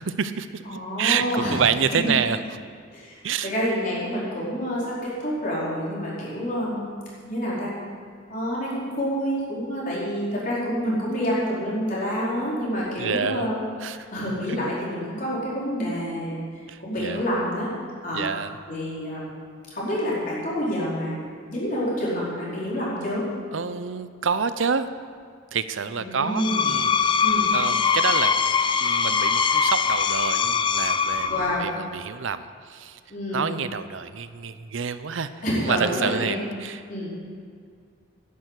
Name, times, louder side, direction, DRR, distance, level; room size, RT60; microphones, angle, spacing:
voice 1, 0.0-2.4 3.2-3.5 13.0-13.5 13.8-14.0 14.5-14.7 16.7-17.2 18.1-18.6 23.5-24.9 25.5-26.9 27.5-28.3 28.8-33.0 33.3-35.3 35.6-36.8, right 6 dB, 75° right, 12 dB, 0.6 m, -28 dB
voice 2, 0.7-1.6 1.9-2.1 2.9-6.9 7.3-7.7 8.3-13.6 14.1-16.4 16.8-17.7 18.0-18.3 18.7-19.3 19.7-23.3 26.0-26.6 27.2-27.5 31.3-31.7 33.1-33.5 35.4-36.4 36.9-37.1, equal, 45° left, -7 dB, 4.6 m, -28 dB
Screech, 26.2-31.7, left 6 dB, 25° left, 0.4 m, -22 dB
11.0 x 10.5 x 8.1 m, 2.1 s
head